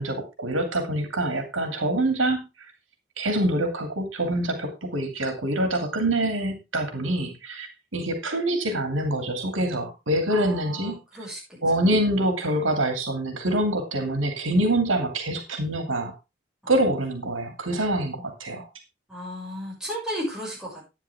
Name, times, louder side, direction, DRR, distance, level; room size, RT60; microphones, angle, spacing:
voice 1, 0.0-2.7 3.2-11.0 11.6-16.1 16.7-18.7, right 1 dB, 85° right, 6 dB, 2.7 m, -25 dB
voice 2, 10.3-11.6 16.6-16.8 19.1-20.8, equal, 5° right, -5 dB, 6.5 m, -34 dB
11.5 x 9.5 x 3.5 m, 0.26 s
head